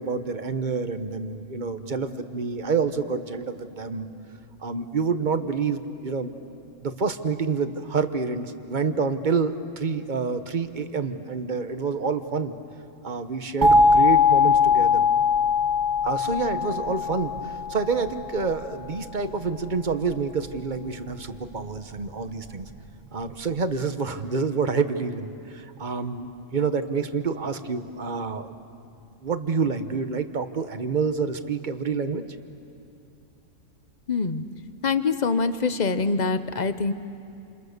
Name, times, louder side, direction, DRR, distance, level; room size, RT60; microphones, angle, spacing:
voice 1, 0.0-4.1 4.6-6.3 6.8-12.5 13.0-15.0 16.0-22.7 23.1-28.5 29.2-32.2, right 5 dB, 40° right, 9 dB, 1.2 m, -28 dB
sound 1, 13.6-18.4, left 4 dB, 15° right, 2.3 m, -20 dB
voice 2, 34.1-34.4 34.8-36.9, left 4 dB, 35° left, 11 dB, 1.0 m, -24 dB
29.0 x 28.0 x 6.7 m, 2.8 s
omnidirectional pair, 1.4 m